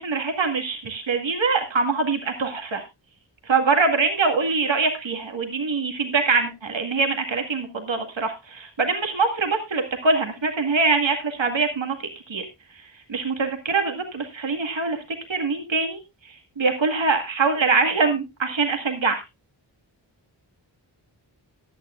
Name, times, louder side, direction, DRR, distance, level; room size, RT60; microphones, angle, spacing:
voice 1, 0.0-2.8 3.5-12.4 13.1-15.0 15.3-16.0 16.6-19.2, right 4 dB, 75° right, 4 dB, 2.1 m, -23 dB
16.5 x 11.0 x 2.5 m, 0.23 s
wide cardioid pair, 55°, 46 cm